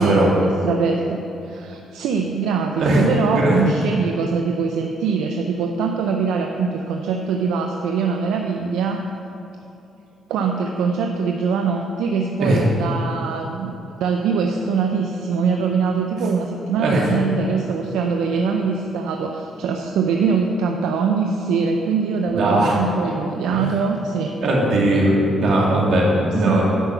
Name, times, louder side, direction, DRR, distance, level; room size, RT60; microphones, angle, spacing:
voice 1, 0.0-9.0 10.3-13.7 14.0-24.4 26.5-26.6, right 5 dB, 90° right, 3 dB, 0.6 m, -23 dB
voice 2, 2.8-3.6 12.4-12.6 16.8-17.1 22.3-22.8 23.5-23.6 24.4-26.6, right 1 dB, 70° right, -4 dB, 2.6 m, -18 dB
10.0 x 6.0 x 6.8 m, 2.8 s
cardioid pair, 90°, 0 cm